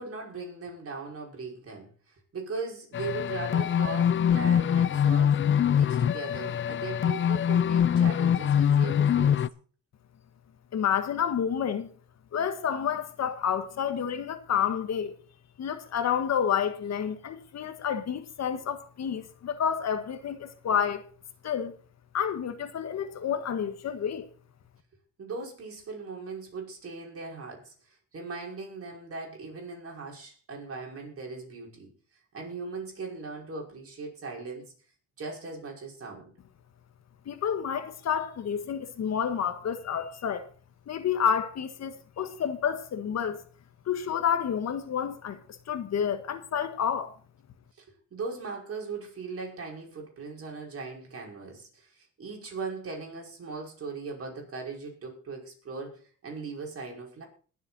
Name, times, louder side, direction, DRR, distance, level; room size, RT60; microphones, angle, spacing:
voice 1, 0.0-9.4 25.2-31.9 32.3-34.7 35.2-36.3 47.8-47.9 48.1-57.2, right 4 dB, 50° right, 5.4 m, -39 dB
sound 1, 2.9-9.5, left 8 dB, 40° left, 0.6 m, -24 dB
voice 2, 10.7-11.9 12.3-15.1 15.6-21.0 21.4-21.7 22.1-24.3 37.2-40.5 40.9-43.4 43.8-47.1, left 8 dB, 60° left, 1.6 m, -29 dB
21.0 x 7.5 x 4.2 m
cardioid pair, 90°, 30 cm